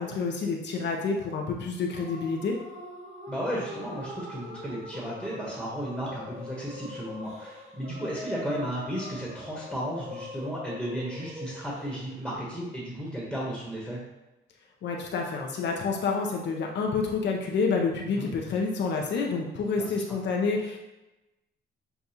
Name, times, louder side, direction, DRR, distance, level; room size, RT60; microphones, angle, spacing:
voice 1, 0.0-2.6 14.8-20.8, left 4 dB, 65° left, 0 dB, 0.6 m, -28 dB
sound 1, 1.9-12.4, left 1 dB, 35° right, 0.9 m, -43 dB
voice 2, 3.3-14.0 18.2-18.3 19.7-19.9, equal, 5° right, -5 dB, 1.2 m, -34 dB
6.7 x 2.3 x 2.9 m, 1.0 s
cardioid pair, 90°, 20 cm